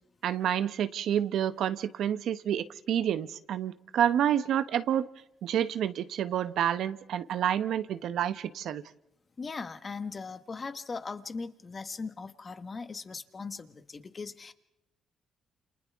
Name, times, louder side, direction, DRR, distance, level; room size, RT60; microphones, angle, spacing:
voice 1, 0.2-5.1 5.4-8.8, right 10 dB, 75° right, 13 dB, 0.9 m, -29 dB
voice 2, 9.4-14.5, left 4 dB, 35° left, 9 dB, 1.5 m, -39 dB
29.0 x 27.5 x 3.6 m, 0.84 s
cardioid pair, 90°, 0 cm